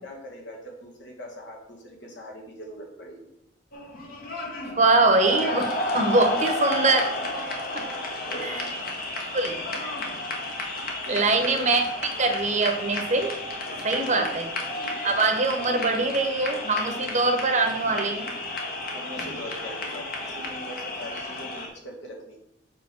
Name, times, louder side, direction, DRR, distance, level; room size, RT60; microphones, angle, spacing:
voice 1, 0.0-3.3 6.3-6.4 8.3-8.6 11.0-11.4 13.9-14.2 18.9-22.4, equal, 70° left, 0 dB, 2.0 m, -41 dB
sound 1, 3.7-21.7, left 2 dB, 50° left, 1.4 m, -32 dB
voice 2, 4.8-7.0 7.7-7.8 8.4-8.6 9.3-9.6 11.1-13.4 13.8-14.5 15.0-18.3, right 3 dB, 40° right, 5 dB, 1.0 m, -23 dB
7.7 x 3.5 x 6.2 m, 0.80 s
head